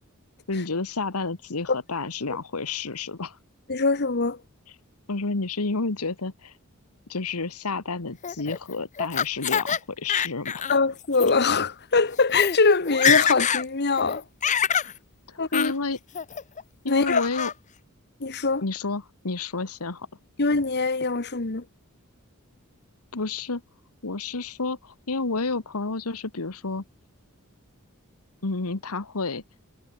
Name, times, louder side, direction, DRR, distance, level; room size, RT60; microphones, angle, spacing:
voice 1, 0.5-3.4 5.1-6.5 7.1-10.7 14.8-14.9 15.3-16.0 16.8-17.5 18.6-20.1 23.1-23.6 24.0-26.8 28.4-29.4, left 3 dB, 85° left, 1.4 m, -30 dB
voice 2, 3.7-4.4 10.7-14.2 15.4-15.7 16.9-17.2 18.2-18.6 20.4-21.6, left 4 dB, 50° left, 1.5 m, -23 dB
Laughter, 8.2-9.8 10.1-10.8 11.1-11.3 12.0-12.1 12.3-12.6 12.9-13.6 14.0-14.9 15.5-15.7 16.1-16.6 17.1-17.5, left 7 dB, 35° left, 0.6 m, -25 dB
head